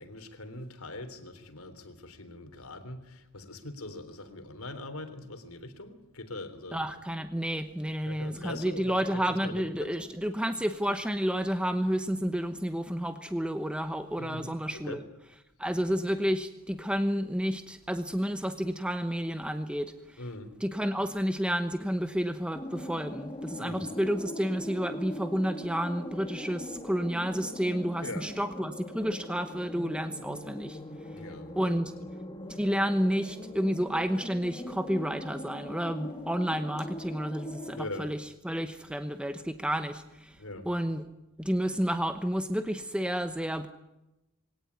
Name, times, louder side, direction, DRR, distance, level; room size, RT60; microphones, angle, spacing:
voice 1, 0.0-6.8 8.0-9.0 9.4-10.1 14.2-15.0 20.2-20.6 23.6-23.9 28.0-28.3 31.1-31.6 32.0-32.1 37.8-38.1 40.4-40.7, left 2 dB, 75° left, 8 dB, 3.6 m, -42 dB
voice 2, 6.7-15.0 15.6-20.2 20.6-30.8 31.6-31.9 32.6-41.0 41.4-43.7, equal, 5° right, 9 dB, 1.0 m, -30 dB
sound 1, 22.5-37.9, left 1 dB, 20° left, 2.2 m, -41 dB
23.0 x 18.0 x 9.6 m, 0.96 s
head